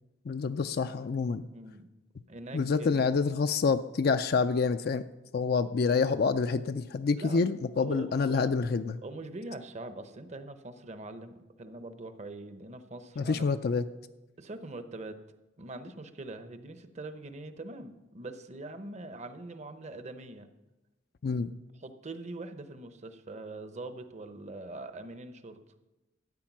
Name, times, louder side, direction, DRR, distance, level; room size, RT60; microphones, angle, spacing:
voice 1, 0.3-1.4 2.5-5.0 5.3-9.0 13.2-13.8 21.2-21.5, left 4 dB, 55° left, 9 dB, 0.4 m, -27 dB
voice 2, 1.5-1.9 2.3-3.1 7.2-7.4 7.8-8.5 9.0-13.6 14.4-15.2 15.6-20.5 21.8-25.6, right 2 dB, 35° right, 10 dB, 0.8 m, -43 dB
13.0 x 8.5 x 6.0 m, 1.0 s
head